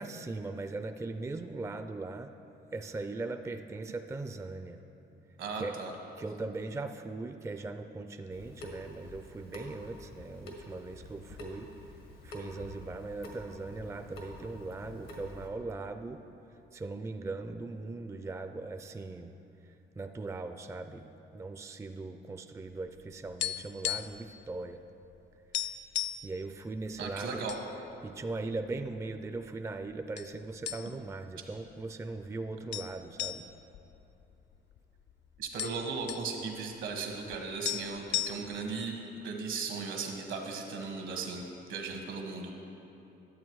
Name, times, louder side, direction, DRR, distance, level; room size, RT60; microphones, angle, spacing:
voice 1, 0.0-2.3 2.7-4.8 5.6-5.7 6.2-11.7 12.2-16.2 16.7-19.3 20.0-21.1 21.3-24.8 26.2-27.4 27.8-33.4, right 3 dB, 15° right, 8 dB, 0.4 m, -39 dB
voice 2, 5.4-5.9 27.0-27.6 35.4-38.9 39.2-41.4 41.7-42.5, right 4 dB, 75° right, 2 dB, 1.5 m, -37 dB
Water tap faucet / Sink (filling or washing) / Drip, 8.3-15.5, left 1 dB, 90° left, 1.6 m, -47 dB
sound 1, 22.8-24.3 24.5-24.7 25.1-25.2 25.5-26.3 27.0-27.6 28.0-28.1 28.8-29.5 30.2-30.3 30.7-31.2 31.5-31.6 32.7-34.8 35.1-35.2 35.4-36.3 37.3-37.4 37.6-38.7, left 11 dB, 65° left, 0.4 m, -35 dB
11.0 x 7.8 x 4.7 m, 2.9 s
cardioid pair, 90°, 20 cm